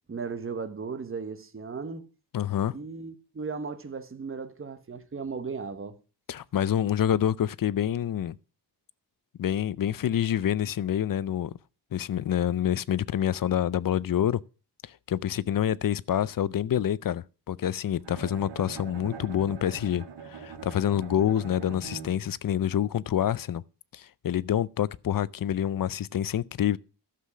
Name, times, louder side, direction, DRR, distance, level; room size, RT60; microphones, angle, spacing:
voice 1, 0.1-2.1 2.7-6.0, right 5 dB, 30° right, 1.2 m, -36 dB
voice 2, 2.3-2.7 6.3-8.4 9.4-11.6 11.9-14.4 14.8-23.6 23.9-26.8, left 10 dB, 55° left, 0.5 m, -27 dB
Bowed string instrument, 18.0-22.4, right 5 dB, 85° right, 2.0 m, -42 dB
12.0 x 7.6 x 6.1 m
wide cardioid pair, 140°, 41 cm